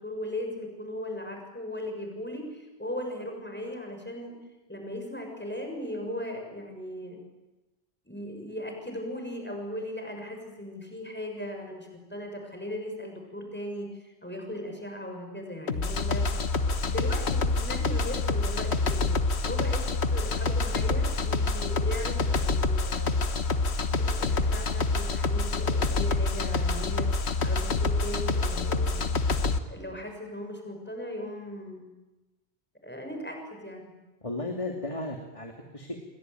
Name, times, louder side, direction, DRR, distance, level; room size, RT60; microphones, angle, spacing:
voice 1, 0.0-4.3 4.7-7.2 8.0-16.3 16.7-19.1 19.4-19.8 20.1-23.3 23.9-27.1 27.4-29.1 29.7-31.9 32.8-33.9, left 1 dB, 10° left, 2 dB, 6.6 m, -38 dB
sound 1, 15.7-29.6, left 3 dB, 70° left, 1.6 m, -27 dB
voice 2, 34.2-36.1, left 2 dB, 30° left, 2 dB, 2.7 m, -35 dB
29.5 x 22.0 x 9.2 m, 1.1 s
omnidirectional pair, 1.1 m